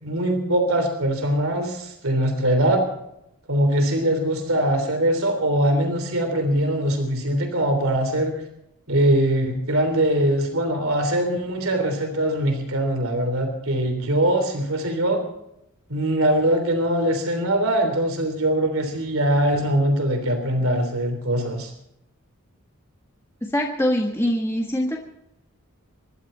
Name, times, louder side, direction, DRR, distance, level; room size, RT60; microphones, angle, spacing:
voice 1, 0.0-2.8 3.5-8.3 8.9-15.2 15.9-21.7, right 1 dB, 65° right, 5 dB, 3.3 m, -22 dB
voice 2, 23.4-25.0, equal, 10° left, 0 dB, 1.5 m, -23 dB
25.5 x 12.0 x 4.5 m, 0.80 s
head